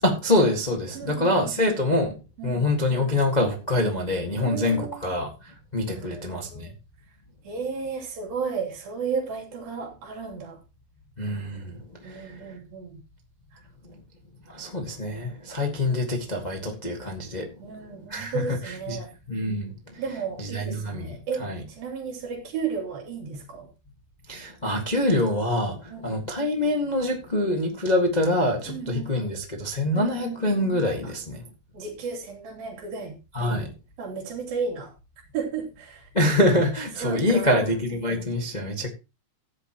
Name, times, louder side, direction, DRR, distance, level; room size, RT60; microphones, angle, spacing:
voice 1, 0.0-2.2 2.4-6.7 11.2-12.6 14.5-17.5 18.1-19.0 19.3-20.0 20.4-21.6 24.3-31.5 33.3-33.7 36.1-38.9, left 1 dB, 30° left, 0.7 m, -25 dB
voice 2, 0.9-1.6 2.4-2.7 4.4-5.2 5.9-6.7 7.4-10.6 12.0-13.0 17.6-19.1 20.0-21.4 21.7-23.7 25.9-26.2 28.7-29.3 29.9-30.5 31.0-31.1 31.7-33.6 34.0-34.9 35.3-36.1 37.0-37.8, right 5 dB, 75° right, 4.8 m, -34 dB
15.0 x 9.9 x 3.0 m
omnidirectional pair, 4.2 m